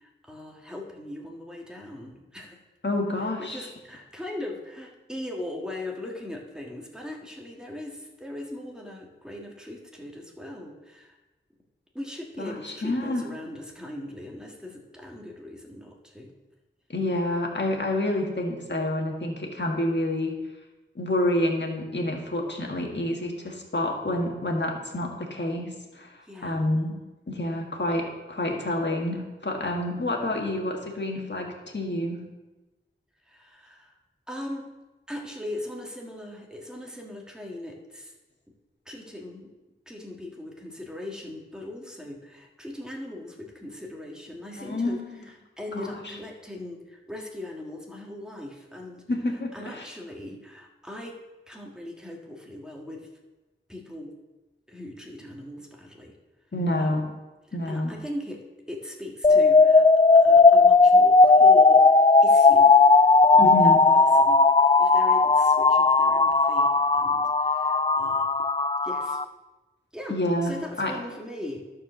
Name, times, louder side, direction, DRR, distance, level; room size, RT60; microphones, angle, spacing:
voice 1, 0.0-2.6 3.4-11.2 11.9-16.3 26.2-26.7 33.3-33.9 34.3-34.7 35.1-38.1 38.9-39.5 39.9-45.0 45.6-49.0 49.5-53.1 53.7-54.1 54.7-56.1 56.8-57.1 57.5-58.4 58.7-59.9 60.1-62.8 63.3-64.4 64.8-68.3 68.8-69.2 69.9-71.7, left 1 dB, 5° right, -1 dB, 1.7 m, -39 dB
voice 2, 2.8-3.7 12.4-13.2 16.9-20.3 21.0-26.1 26.4-26.9 27.3-31.5 31.7-32.2 44.6-45.2 45.7-46.0 49.1-49.9 56.5-57.0 57.5-57.9 63.4-63.8 70.1-70.9, left 1 dB, 55° left, 0 dB, 1.8 m, -28 dB
sound 1, 59.2-69.2, left 3 dB, 25° left, 0.3 m, -17 dB
12.0 x 4.8 x 6.5 m, 1.1 s
wide cardioid pair, 50°, 21 cm